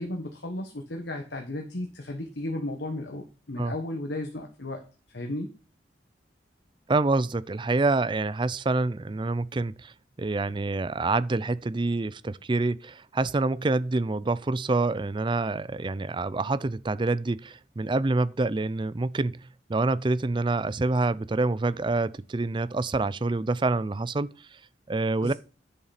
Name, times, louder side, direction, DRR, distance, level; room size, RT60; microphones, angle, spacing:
voice 1, 0.0-4.8 5.1-5.5 25.2-25.3, left 1 dB, 75° left, 1.4 m, -34 dB
voice 2, 6.9-9.9 10.2-19.4 19.7-24.3 24.9-25.3, right 3 dB, 25° right, 0.4 m, -26 dB
10.5 x 7.0 x 4.2 m
head